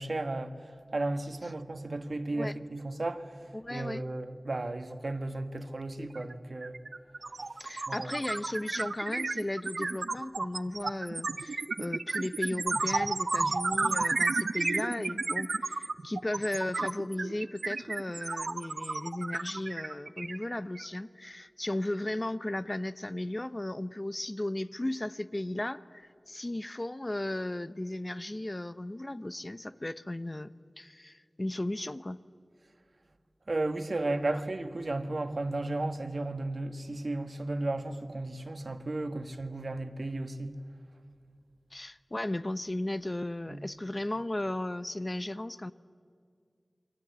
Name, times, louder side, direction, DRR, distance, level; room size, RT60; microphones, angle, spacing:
voice 1, 0.0-3.3 3.7-6.8 7.9-8.1 33.5-40.5 43.5-43.6, right 2 dB, 65° right, 1.5 m, -34 dB
voice 2, 3.5-4.0 7.6-32.2 34.3-34.4 41.7-45.7, left 1 dB, 30° left, 0.8 m, -35 dB
sound 1, 6.1-6.3 6.6-20.9, right 3 dB, 90° right, 0.6 m, -32 dB
29.0 x 22.5 x 8.2 m
wide cardioid pair, 60°, 0 cm